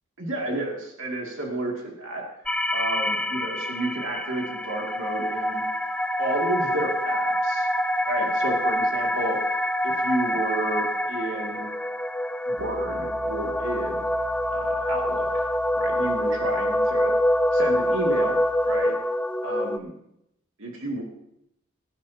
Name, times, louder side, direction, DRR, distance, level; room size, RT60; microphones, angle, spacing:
voice 1, 0.2-2.2 2.7-5.6 6.2-7.7 8.0-9.5 9.8-11.7 12.5-14.0 14.5-15.4 15.7-17.1 17.5-18.4 18.6-18.9 19.4-19.9 20.6-21.0, right 1 dB, 70° right, -1 dB, 2.5 m, -31 dB
sound 1, 2.5-19.8, left 1 dB, 5° left, 0.4 m, -26 dB
Piano, 12.6-18.9, left 1 dB, 50° right, 1.0 m, -46 dB
20.0 x 11.5 x 2.9 m, 0.79 s
head